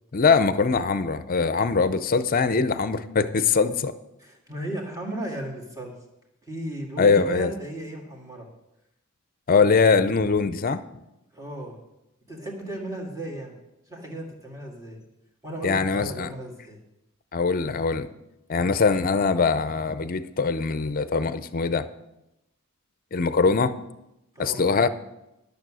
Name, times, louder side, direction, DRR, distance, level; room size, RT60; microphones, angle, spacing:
voice 1, 0.1-3.9 7.0-7.5 9.5-10.8 15.6-16.3 17.3-18.1 18.5-21.9 23.1-23.7 24.4-24.9, left 4 dB, 40° left, 13 dB, 0.5 m, -22 dB
voice 2, 4.2-6.0 6.4-8.5 11.3-11.8 12.3-13.5 13.9-15.0 15.4-16.8 24.3-24.7, right 1 dB, 15° right, -1 dB, 1.9 m, -35 dB
12.0 x 6.8 x 6.2 m, 0.91 s
head